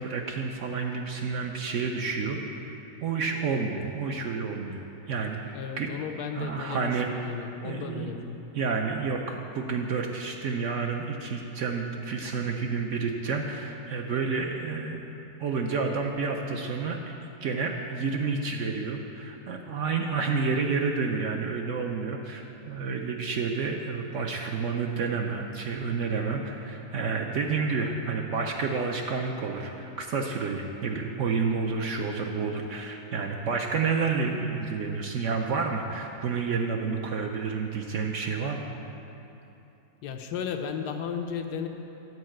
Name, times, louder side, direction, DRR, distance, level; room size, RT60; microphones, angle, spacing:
voice 1, 0.0-2.7 3.0-4.8 5.1-5.9 6.3-7.3 7.6-8.1 8.5-15.0 15.4-17.1 17.4-38.7, right 4 dB, 65° right, 2 dB, 0.8 m, -30 dB
voice 2, 5.5-8.4 40.0-41.7, left 7 dB, 90° left, 5 dB, 1.3 m, -34 dB
9.5 x 4.6 x 7.6 m, 2.9 s
omnidirectional pair, 1.7 m